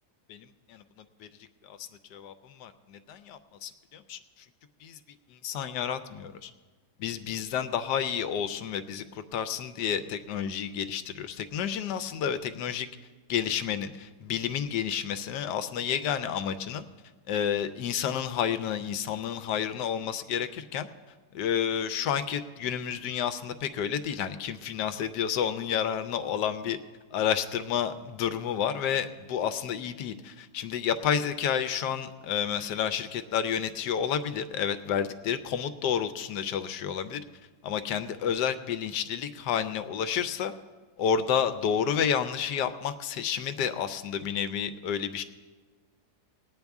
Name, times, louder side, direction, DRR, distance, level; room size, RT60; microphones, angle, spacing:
voice 1, 0.3-0.8 1.2-1.3 1.6-4.2 4.8-5.0 5.3-6.5 7.0-12.9 13.3-16.8 17.3-20.9 21.3-26.8 27.1-37.2 37.6-40.5 41.0-45.2, left 8 dB, 85° left, 11 dB, 1.2 m, -30 dB
19.5 x 9.5 x 3.5 m, 1.4 s
omnidirectional pair, 1.8 m